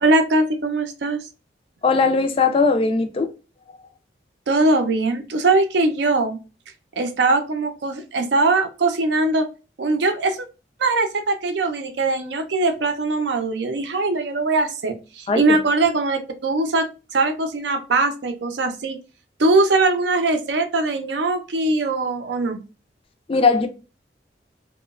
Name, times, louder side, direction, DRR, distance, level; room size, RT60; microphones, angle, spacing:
voice 1, 0.0-1.2 4.5-6.4 7.0-9.5 9.8-10.4 10.8-19.0 19.4-22.6, right 3 dB, 80° right, 0.5 m, -21 dB
voice 2, 1.8-3.3 15.3-15.6 23.3-23.7, left 4 dB, 30° left, 0.3 m, -19 dB
2.9 x 2.1 x 2.3 m
head